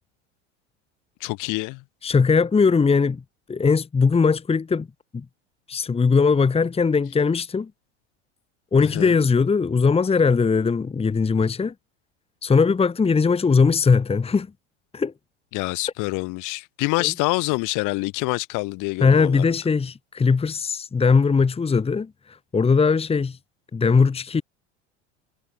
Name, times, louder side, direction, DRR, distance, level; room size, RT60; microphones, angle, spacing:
voice 1, 1.2-1.8 8.8-9.2 15.5-19.5, left 25 dB, 60° left, 3.4 m, -26 dB
voice 2, 2.0-3.2 3.5-4.9 5.1-5.2 5.7-7.7 8.7-11.7 12.4-14.5 14.9-15.1 17.0-17.1 19.0-23.4 23.7-24.4, left 5 dB, 15° left, 1.6 m, -20 dB
hypercardioid pair, 90°, 36 cm